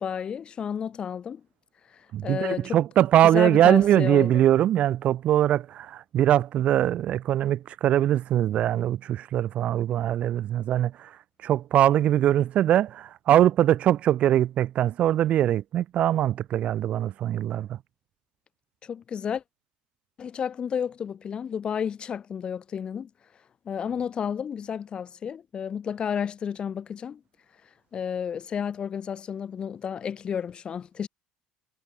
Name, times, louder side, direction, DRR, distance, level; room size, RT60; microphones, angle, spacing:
voice 1, 0.0-1.4 2.2-2.8 3.2-4.4 18.8-19.4 20.2-23.1 23.6-27.2 27.9-31.1, left 7 dB, 35° left, 4.7 m, -31 dB
voice 2, 2.1-11.1 11.4-17.8, right 12 dB, 55° right, 2.2 m, -22 dB
cardioid pair, 110°, 3 cm